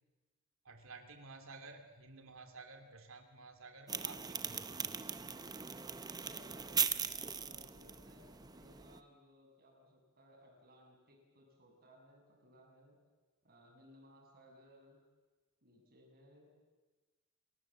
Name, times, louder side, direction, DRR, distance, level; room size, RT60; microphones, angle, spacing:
voice 1, 0.6-4.9, right 3 dB, 65° right, 5 dB, 2.9 m, -53 dB
sound 1, 3.9-9.0, right 6 dB, 20° right, 0.9 m, -39 dB
voice 2, 6.2-13.0 13.4-15.0 15.6-16.5, equal, 45° right, 0 dB, 7.1 m, -62 dB
29.5 x 19.5 x 7.6 m, 1.3 s
head